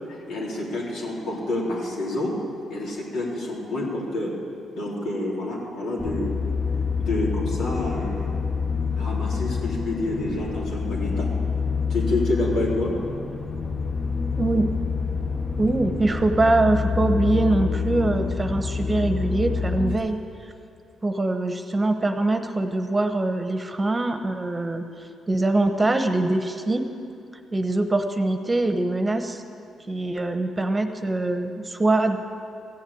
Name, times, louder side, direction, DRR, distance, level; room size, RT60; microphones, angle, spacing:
voice 1, 0.1-2.3 2.7-4.3 4.7-6.3 7.0-8.3 9.0-11.3 11.9-12.9, left 2 dB, 80° left, -4 dB, 3.5 m, -28 dB
sound 1, 6.0-20.0, left 5 dB, 30° left, 1.1 m, -27 dB
voice 2, 14.4-14.7 15.6-20.2 21.0-24.8 25.3-26.8 27.5-29.4 29.9-32.2, right 2 dB, 25° right, 7 dB, 1.1 m, -23 dB
15.0 x 7.4 x 8.7 m, 2.5 s
cardioid pair, 75°, 0 cm